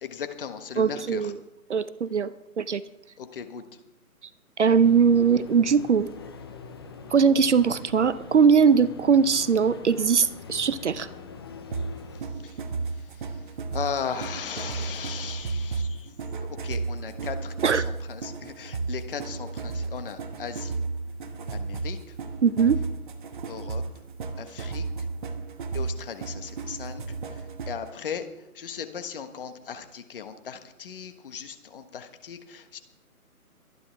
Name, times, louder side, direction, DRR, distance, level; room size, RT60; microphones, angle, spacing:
voice 1, 0.0-1.3 3.2-3.6 12.4-12.5 13.7-16.1 16.6-17.8 18.1-20.7 21.5-22.0 23.5-23.8 24.4-24.8 25.7-27.0 27.7-28.2 28.5-32.8, left 7 dB, 35° left, 8 dB, 1.5 m, -37 dB
voice 2, 0.8-1.4 1.7-2.8 4.6-6.1 7.1-11.1 17.6-17.8 22.4-22.8, right 6 dB, 50° right, 16 dB, 0.7 m, -21 dB
sound 1, 4.7-12.2, left 5 dB, 15° left, 0.7 m, -43 dB
sound 2, 11.7-27.9, right 4 dB, 35° right, 1.2 m, -33 dB
23.5 x 10.5 x 3.5 m, 0.89 s
figure-of-eight pair, 150°, 45 cm